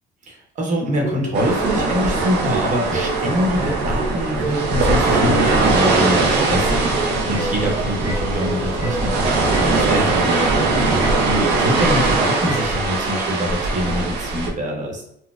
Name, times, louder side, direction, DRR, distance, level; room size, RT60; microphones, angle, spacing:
voice 1, 0.3-15.0, equal, 45° right, 0 dB, 0.9 m, -24 dB
sound 1, 1.0-12.8, right 2 dB, 20° right, 0.6 m, -29 dB
sound 2, 1.3-14.5, right 3 dB, 80° right, 0.6 m, -20 dB
3.9 x 2.1 x 2.4 m, 0.72 s
cardioid pair, 110°, 17 cm